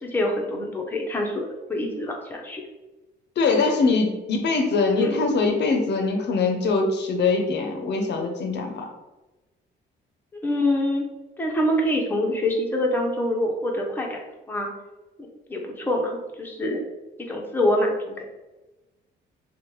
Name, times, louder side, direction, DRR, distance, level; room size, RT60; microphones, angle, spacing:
voice 1, 0.0-2.6 5.0-5.3 10.4-11.1 11.4-14.2 14.5-14.7 15.5-16.9 17.2-18.2, left 1 dB, 10° left, 0 dB, 0.5 m, -25 dB
voice 2, 3.4-8.9, left 4 dB, 60° left, 3 dB, 0.5 m, -22 dB
2.9 x 2.1 x 3.0 m, 1.1 s
cardioid pair, 90°, 20 cm